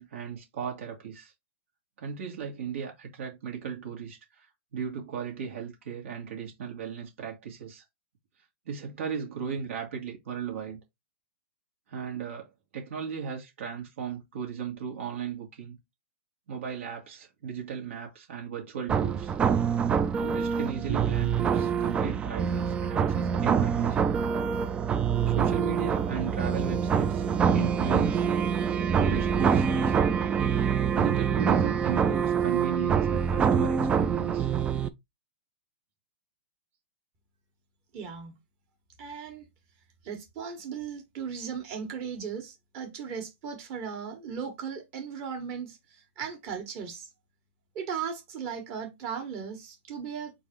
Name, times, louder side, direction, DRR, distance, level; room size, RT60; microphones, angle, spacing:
voice 1, 0.0-1.3 2.0-4.4 4.7-7.8 8.6-10.8 11.9-15.7 16.5-19.4 20.2-24.1 25.2-27.2 27.5-28.3 28.9-29.9 30.9-34.5, right 7 dB, 70° right, 1.7 m, -36 dB
sound 1, 18.9-34.9, right 7 dB, 15° right, 0.3 m, -25 dB
voice 2, 37.9-38.3 39.0-39.5 40.0-47.1 47.7-50.3, right 7 dB, 40° right, 1.7 m, -37 dB
4.0 x 2.6 x 4.4 m
hypercardioid pair, 140°, 7 cm